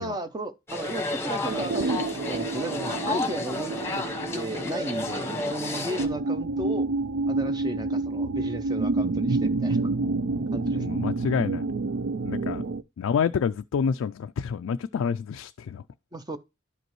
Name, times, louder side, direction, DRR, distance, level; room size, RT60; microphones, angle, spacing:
voice 1, 0.0-4.0 4.3-6.9 7.3-9.8 10.5-10.8 12.6-12.7 16.1-16.4, right 1 dB, 20° right, 0.6 m, -34 dB
sound 1, 0.7-6.1, left 2 dB, 15° left, 1.1 m, -32 dB
sound 2, 1.5-12.8, right 3 dB, 65° right, 0.4 m, -29 dB
voice 2, 10.6-11.6 12.2-12.6 13.0-15.8, left 6 dB, 75° left, 0.3 m, -28 dB
11.5 x 5.1 x 3.1 m
head